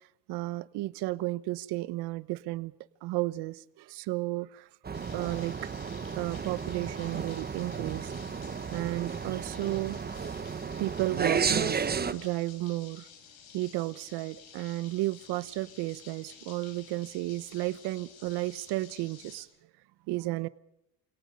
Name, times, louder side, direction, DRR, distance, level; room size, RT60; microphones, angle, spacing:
voice 1, 0.3-2.7 3.0-4.7 5.1-5.7 6.1-8.1 8.7-10.0 10.8-13.1 13.5-19.5 20.1-20.5, right 18 dB, 75° right, 17 dB, 1.1 m, -33 dB
sound 1, 4.8-12.1, right 6 dB, 25° right, 1.3 m, -33 dB
sound 2, 4.9-19.4, left 7 dB, 65° left, 5.8 m, -53 dB
29.0 x 18.0 x 5.2 m, 0.80 s
cardioid pair, 120°, 40 cm